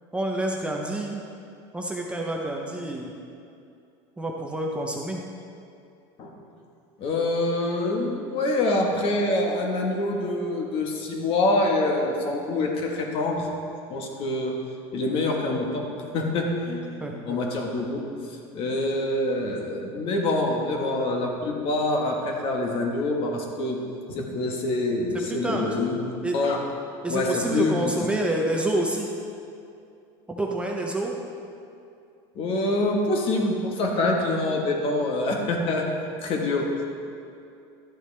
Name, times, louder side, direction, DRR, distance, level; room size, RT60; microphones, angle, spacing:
voice 1, 0.1-1.2 1.7-3.1 4.2-5.2 17.0-17.4 25.4-25.7 26.2-26.4 27.0-29.1 30.3-31.2, right 1 dB, 10° right, -1 dB, 0.7 m, -28 dB
voice 2, 7.0-13.5 13.9-14.5 14.9-15.9 16.1-18.0 18.5-23.8 24.1-26.6 27.1-27.9 32.3-35.9 36.2-36.7, left 2 dB, 45° left, 1 dB, 1.4 m, -25 dB
12.0 x 8.0 x 3.3 m, 2.5 s
supercardioid pair, 135°, 13 cm